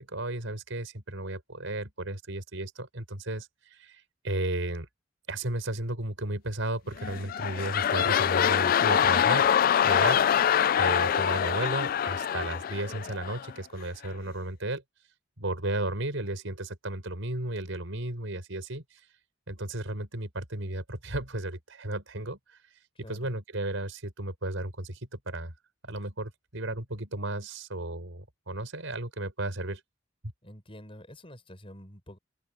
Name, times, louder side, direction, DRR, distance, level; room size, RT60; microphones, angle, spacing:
voice 1, 0.0-4.9 5.3-9.5 9.8-10.2 10.7-14.8 15.4-18.8 19.5-22.4 23.1-25.5 25.8-29.8, right 2 dB, 90° right, 4.7 m, -34 dB
sound 1, 7.0-13.5 14.1-14.2, left 9 dB, 45° left, 0.3 m, -25 dB
voice 2, 23.0-23.3 30.4-32.2, equal, 30° left, 7.2 m, -47 dB
open air
head